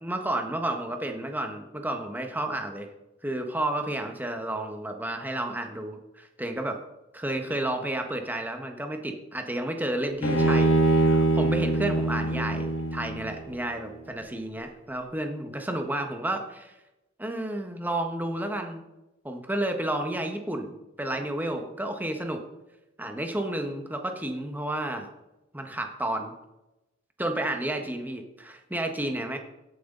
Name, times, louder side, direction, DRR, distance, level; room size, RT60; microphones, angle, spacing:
voice 1, 0.0-2.9 3.2-6.8 7.1-16.7 17.2-18.8 19.2-22.4 23.0-25.1 25.5-26.3 27.2-29.4, right 1 dB, 10° right, 4 dB, 1.4 m, -31 dB
Bowed string instrument, 10.2-13.5, right 2 dB, 70° left, 2.1 m, -23 dB
16.5 x 9.5 x 4.0 m, 0.96 s
head